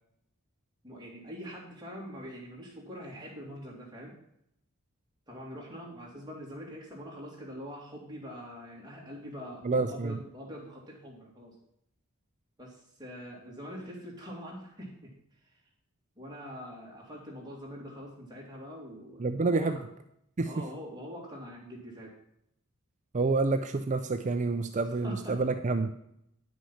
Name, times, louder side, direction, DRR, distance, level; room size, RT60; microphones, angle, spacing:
voice 1, 0.8-4.2 5.3-11.5 12.6-15.1 16.2-19.8 20.4-22.1 25.0-25.4, equal, 20° right, -3 dB, 2.7 m, -44 dB
voice 2, 9.6-10.2 19.2-19.8 20.4-20.6 23.1-25.9, right 3 dB, 35° right, 8 dB, 0.4 m, -28 dB
9.9 x 6.2 x 5.6 m, 0.75 s
head